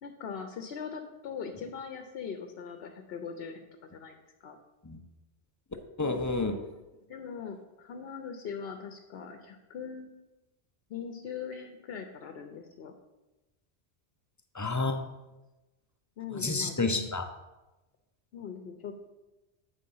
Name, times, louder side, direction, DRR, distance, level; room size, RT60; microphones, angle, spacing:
voice 1, 0.0-3.7 3.9-4.6 7.1-10.1 10.9-12.9 16.2-17.1 18.3-19.1, left 6 dB, 75° left, 5 dB, 0.9 m, -41 dB
voice 2, 6.0-6.6 14.5-15.0 16.3-17.2, left 3 dB, 30° left, 6 dB, 0.4 m, -29 dB
8.6 x 3.6 x 5.4 m, 1.1 s
omnidirectional pair, 1.1 m